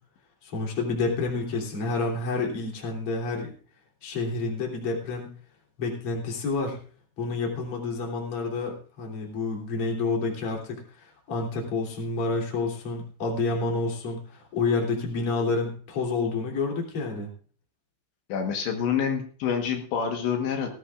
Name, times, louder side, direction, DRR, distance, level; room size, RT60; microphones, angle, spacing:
voice 1, 0.4-3.5 4.0-5.3 5.8-6.8 7.2-17.3, left 3 dB, 35° left, 0 dB, 3.5 m, -29 dB
voice 2, 18.3-20.7, left 7 dB, 75° left, 3 dB, 3.5 m, -27 dB
19.0 x 15.0 x 2.5 m, 0.43 s
omnidirectional pair, 5.3 m